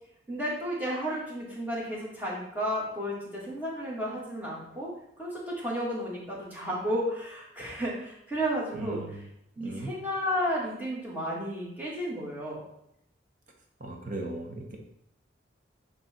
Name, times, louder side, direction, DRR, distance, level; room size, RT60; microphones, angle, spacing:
voice 1, 0.3-4.9 5.2-9.0 9.6-12.6, equal, 10° right, -6 dB, 1.7 m, -32 dB
voice 2, 8.7-9.3 9.6-9.9 13.8-14.8, right 2 dB, 45° right, 2 dB, 1.0 m, -37 dB
8.2 x 3.2 x 4.3 m, 0.76 s
head